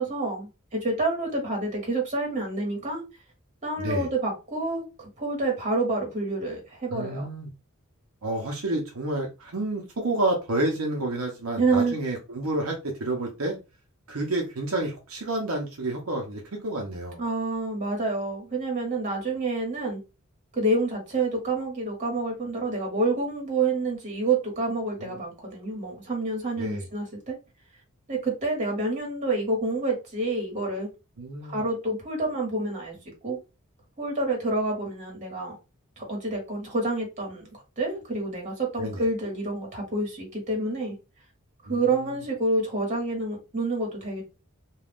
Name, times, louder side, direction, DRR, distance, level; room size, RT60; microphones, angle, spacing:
voice 1, 0.0-3.0 3.6-7.3 11.6-12.0 17.2-20.0 20.5-27.4 28.1-30.9 31.5-33.0 33.2-33.4 34.0-35.6 36.0-41.0 41.7-44.2, right 2 dB, 35° right, 1.3 m, -28 dB
voice 2, 3.8-4.1 6.9-7.5 8.2-13.6 14.1-17.2 26.6-26.9 31.2-31.6 38.8-39.0 41.7-41.9, right 2 dB, 70° right, 0.7 m, -29 dB
2.4 x 2.3 x 3.4 m
head